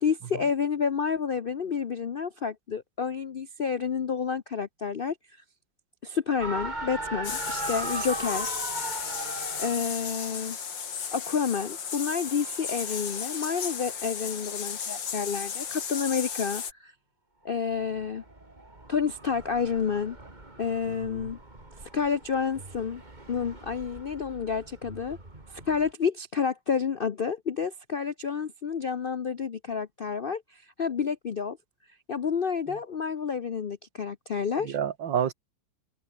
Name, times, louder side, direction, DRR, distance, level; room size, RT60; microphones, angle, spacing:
voice 1, 0.0-5.2 6.0-8.6 9.6-10.6 11.1-16.9 17.4-18.2 18.9-20.2 20.6-21.4 21.8-23.0 23.3-25.2 25.5-31.6 32.1-34.8, left 6 dB, 60° left, 0.5 m, -29 dB
sound 1, 6.4-10.0 11.6-13.9 17.5-25.9, right 2 dB, 25° right, 3.3 m, -39 dB
sound 2, 7.2-16.7, left 7 dB, 80° left, 2.7 m, -34 dB
voice 2, 20.9-21.3 32.7-32.8 34.6-35.3, right 9 dB, 85° right, 2.1 m, -30 dB
omnidirectional pair, 2.0 m